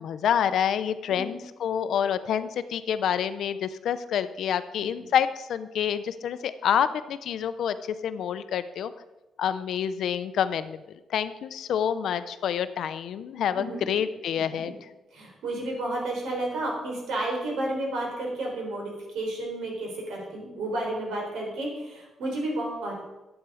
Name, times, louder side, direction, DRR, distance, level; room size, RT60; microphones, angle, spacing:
voice 1, 0.0-7.7 8.0-8.9 9.4-10.8 11.1-14.7, left 8 dB, 65° left, 12 dB, 0.6 m, -27 dB
voice 2, 13.6-14.0 14.6-14.7 15.1-23.0, right 1 dB, 85° right, -1 dB, 3.9 m, -32 dB
11.5 x 8.1 x 4.9 m, 1.0 s
cardioid pair, 165°, 0 cm